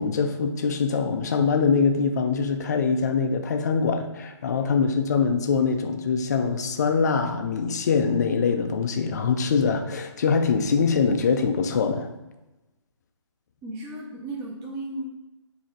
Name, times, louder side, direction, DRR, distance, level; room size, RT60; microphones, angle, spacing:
voice 1, 0.0-12.1, left 5 dB, 35° left, 6 dB, 0.5 m, -23 dB
voice 2, 13.6-15.1, right 1 dB, 15° right, -3 dB, 0.8 m, -34 dB
7.6 x 2.8 x 4.5 m, 1.0 s
figure-of-eight pair, 145°, 16 cm